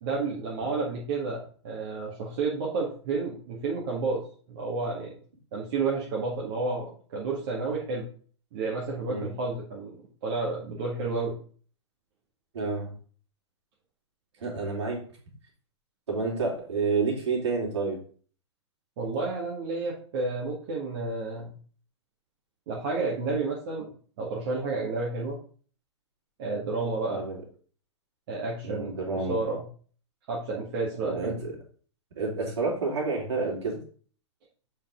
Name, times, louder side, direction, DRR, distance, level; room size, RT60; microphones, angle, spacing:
voice 1, 0.0-4.2 4.5-5.1 5.5-8.1 8.5-10.0 10.2-11.4 19.0-21.5 22.7-23.9 24.2-25.4 26.4-27.2 28.3-29.6 30.3-31.4, right 3 dB, 50° right, -4 dB, 1.9 m, -31 dB
voice 2, 12.5-12.9 14.4-15.0 16.1-18.0 27.1-27.4 28.6-29.4 31.0-31.6 32.2-33.8, right 4 dB, 70° right, -2 dB, 3.2 m, -29 dB
7.3 x 4.9 x 3.8 m, 0.43 s
figure-of-eight pair, 105°, 15 cm